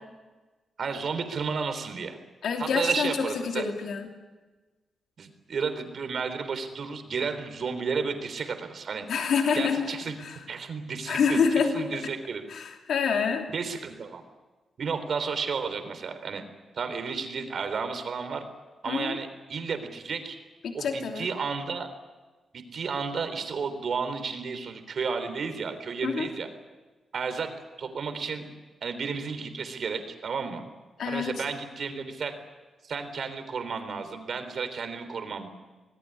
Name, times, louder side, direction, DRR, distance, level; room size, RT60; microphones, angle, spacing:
voice 1, 0.8-2.2 2.6-3.6 5.2-9.1 9.5-10.2 10.5-12.4 13.5-14.2 14.8-16.4 16.8-18.4 18.8-20.4 20.7-21.9 22.5-26.5 27.1-27.5 27.8-28.5 28.8-30.6 31.0-32.4 32.8-35.5, right 5 dB, 50° right, 8 dB, 3.6 m, -32 dB
voice 2, 2.4-3.1 3.4-4.1 9.1-9.9 10.2-10.3 11.1-11.9 12.5-13.5 18.9-19.2 20.6-21.3 26.0-26.3 31.0-31.4, left 6 dB, 75° left, 2 dB, 2.9 m, -27 dB
26.5 x 19.5 x 9.9 m, 1.3 s
wide cardioid pair, 170°, 0 cm